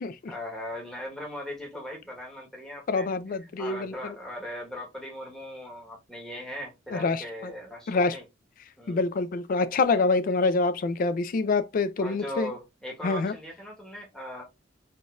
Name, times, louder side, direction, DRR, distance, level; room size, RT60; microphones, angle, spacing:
voice 1, 0.3-8.2 8.8-9.0 12.0-14.4, left 1 dB, 5° left, 1.1 m, -39 dB
voice 2, 2.9-4.1 6.9-7.5 7.9-8.2 8.9-12.5 13.0-13.3, left 3 dB, 50° left, 0.4 m, -26 dB
3.6 x 2.6 x 2.3 m
head